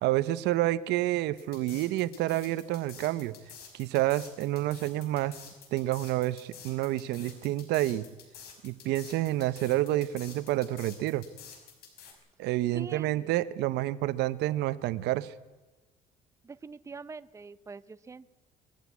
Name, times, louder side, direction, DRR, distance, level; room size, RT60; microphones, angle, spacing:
voice 1, 0.0-3.3 3.7-5.4 5.7-8.1 8.6-11.2 12.4-15.3, right 15 dB, 85° right, 16 dB, 0.9 m, -29 dB
sound 1, 1.4-12.1, left 7 dB, 65° left, 5.7 m, -49 dB
voice 2, 12.7-13.3 16.4-18.3, right 4 dB, 15° right, 15 dB, 0.7 m, -44 dB
21.5 x 14.5 x 9.4 m, 1.2 s
cardioid pair, 110°, 17 cm